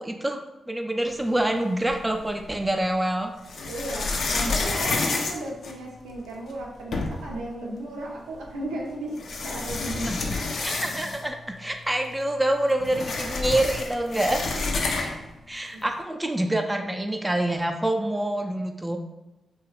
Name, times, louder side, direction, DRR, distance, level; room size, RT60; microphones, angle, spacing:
voice 1, 0.0-3.3 10.1-10.2 10.6-14.5 15.5-19.0, right 1 dB, 15° right, 4 dB, 0.4 m, -26 dB
sound 1, 1.9-2.6 3.4-6.2 6.6-6.7 6.9-7.4 8.5-8.6 9.2-11.4 11.7-11.8 12.1-15.3, left 3 dB, 70° left, 0.4 m, -29 dB
voice 2, 3.6-5.0 5.3-9.2 9.4-10.3 15.7-15.8, right 1 dB, 85° right, -3 dB, 0.5 m, -35 dB
2.8 x 2.3 x 3.0 m, 1.0 s
supercardioid pair, 40°, 0 cm